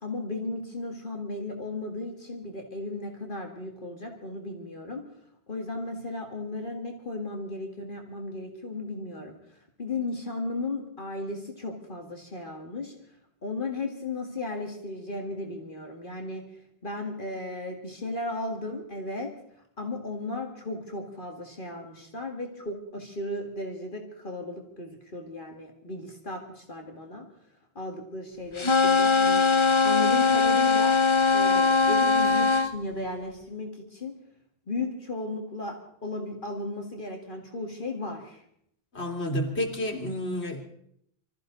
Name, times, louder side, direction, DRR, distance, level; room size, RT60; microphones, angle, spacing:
voice 1, 0.0-5.1 5.5-9.4 9.8-12.9 13.4-16.4 16.8-19.3 19.8-27.2 27.8-29.5 29.8-30.9 31.3-34.1 34.7-38.4, left 2 dB, 50° left, 1 dB, 2.2 m, -35 dB
sound 1, 28.6-32.7, left 4 dB, 30° left, 0.8 m, -21 dB
voice 2, 38.9-40.6, left 1 dB, 75° left, 1 dB, 2.9 m, -30 dB
25.5 x 14.0 x 4.0 m, 0.70 s
omnidirectional pair, 1.1 m